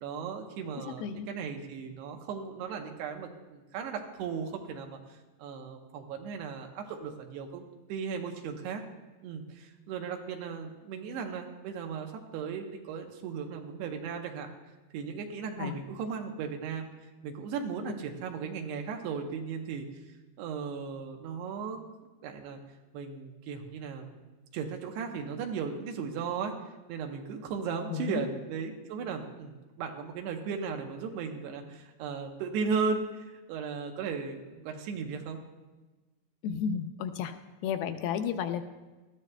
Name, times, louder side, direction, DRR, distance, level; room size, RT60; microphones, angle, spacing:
voice 1, 0.0-8.8 9.2-14.5 14.9-16.9 17.2-19.9 20.4-21.8 22.2-22.6 22.9-24.2 24.5-26.5 26.9-35.4, right 5 dB, 85° right, 3 dB, 3.1 m, -36 dB
voice 2, 0.8-1.3 15.6-15.8 27.9-28.3 36.4-37.4 37.6-38.6, left 8 dB, 80° left, 9 dB, 2.3 m, -33 dB
19.5 x 13.0 x 2.2 m, 1.2 s
omnidirectional pair, 4.7 m